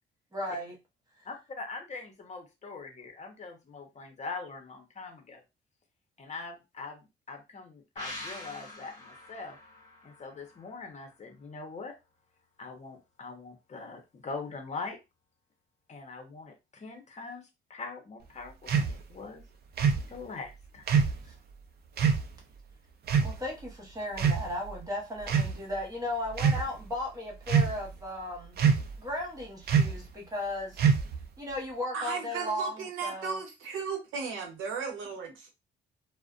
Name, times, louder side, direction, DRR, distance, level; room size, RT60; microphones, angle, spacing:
voice 1, 0.3-0.7 21.2-21.3 23.2-28.6 29.0-30.8 31.4-33.4, left 1 dB, 20° right, 1.0 m, -36 dB
voice 2, 1.2-5.4 6.2-9.6 10.0-11.9 12.6-15.0 15.9-19.4 20.1-21.0, left 4 dB, 35° left, 0.8 m, -42 dB
sound 1, 8.0-11.4 11.7-11.8, left 2 dB, 20° left, 1.4 m, -45 dB
sound 2, 18.7-18.9 19.8-20.1 20.9-21.2 22.0-22.2 23.1-23.4 24.1-24.7 25.2-25.6 26.3-26.6 27.5-27.9 28.6-29.0 29.7-30.0 30.8-31.2, right 6 dB, 55° right, 0.5 m, -24 dB
voice 3, 31.9-35.5, right 5 dB, 90° right, 0.8 m, -35 dB
2.4 x 2.1 x 2.4 m
cardioid pair, 90°, 20 cm